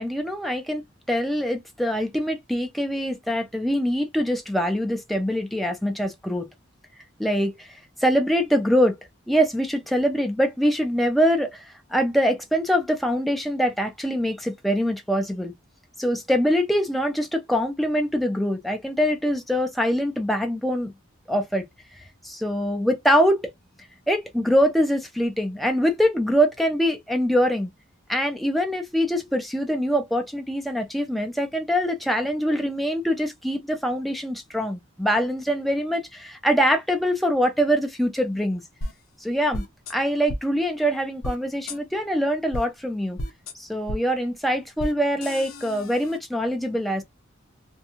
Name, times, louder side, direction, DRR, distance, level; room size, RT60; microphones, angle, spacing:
voice 1, 0.0-6.5 7.2-7.7 8.0-9.0 9.3-11.6 11.9-15.5 16.0-20.9 21.3-21.6 22.2-23.5 24.1-27.7 28.1-38.6 39.2-39.6 39.9-43.2 43.6-47.0, equal, ahead, 0.5 m, -24 dB
sound 1, 38.8-38.9 39.5-39.9 40.3-40.4 41.2-41.4 41.7-41.8 42.5-42.6 43.2-43.5 43.9-44.0 44.8-44.9 45.2-46.2, equal, 85° left, 0.7 m, -32 dB
2.7 x 2.3 x 2.7 m
head